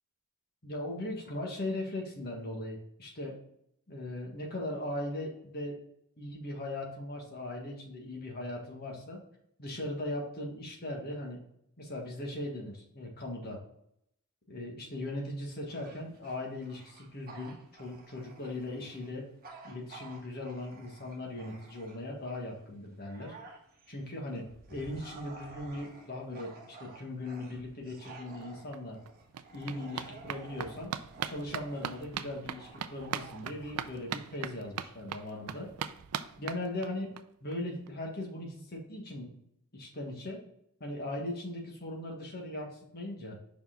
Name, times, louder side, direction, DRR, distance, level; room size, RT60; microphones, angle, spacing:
voice 1, 0.6-3.4 3.9-5.8 6.2-9.2 9.6-11.4 11.8-13.6 14.5-19.3 19.6-23.3 23.9-29.0 29.5-30.9 31.2-35.7 36.4-39.3 39.7-40.4 40.8-43.4, left 1 dB, 45° left, 0 dB, 1.6 m, -39 dB
Bark / Growling, 15.7-22.2 22.7-34.6, right 3 dB, 45° right, 1.2 m, -52 dB
sound 1, 28.4-28.5 28.7-37.2 37.5-37.6 37.9-38.0 38.2-38.3, right 8 dB, 80° right, 0.4 m, -40 dB
5.5 x 4.7 x 3.9 m, 0.74 s
head